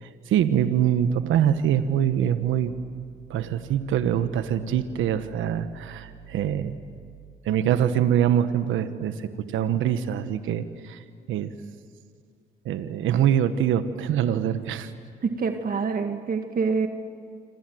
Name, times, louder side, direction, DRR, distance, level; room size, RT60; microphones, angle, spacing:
voice 1, 0.0-2.7 3.3-6.7 7.4-11.0 11.3-11.5 12.6-14.9, right 10 dB, 85° right, 10 dB, 1.2 m, -24 dB
voice 2, 15.2-16.9, right 5 dB, 45° right, 6 dB, 1.9 m, -26 dB
26.5 x 26.5 x 7.8 m, 2.2 s
cardioid pair, 90°, 20 cm